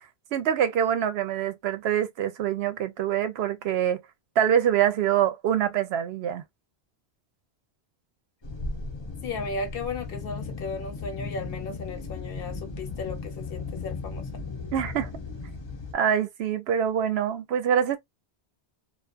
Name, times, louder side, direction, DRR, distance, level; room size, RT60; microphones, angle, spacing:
voice 1, 0.3-4.0 4.4-6.4 14.7-15.1 15.9-18.0, right 9 dB, 75° right, 0.8 m, -25 dB
sound 1, 8.4-15.9, left 3 dB, 30° left, 0.6 m, -36 dB
voice 2, 9.2-14.3, left 4 dB, 60° left, 1.0 m, -35 dB
2.4 x 2.2 x 2.3 m
omnidirectional pair, 1.1 m